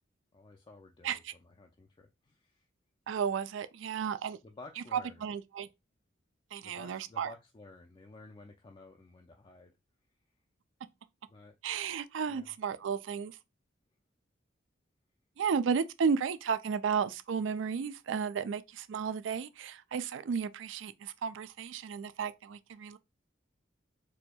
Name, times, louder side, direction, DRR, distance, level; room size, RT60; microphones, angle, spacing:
voice 1, 0.3-2.6 4.4-5.2 6.6-9.7 11.3-11.6 12.3-12.5, left 2 dB, 25° left, 0.4 m, -53 dB
voice 2, 3.1-4.4 4.9-5.7 6.5-7.3 11.6-13.3 15.4-23.0, right 6 dB, 80° right, 0.4 m, -33 dB
4.3 x 2.7 x 2.2 m
head